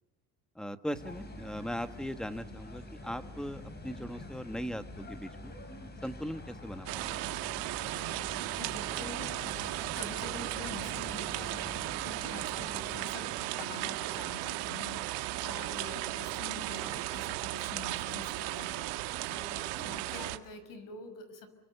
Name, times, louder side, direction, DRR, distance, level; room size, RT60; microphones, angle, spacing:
voice 1, 0.5-5.5 6.0-7.3 16.8-16.9 19.7-19.9, equal, ahead, 11 dB, 1.4 m, -39 dB
sound 1, 0.9-13.1, left 1 dB, 25° left, 4.7 m, -46 dB
sound 2, 6.9-20.4, right 17 dB, 85° right, 1.8 m, -36 dB
voice 2, 8.3-21.5, left 3 dB, 55° left, 10 dB, 6.0 m, -46 dB
29.0 x 24.0 x 6.9 m, 1.1 s
cardioid pair, 130°, 39 cm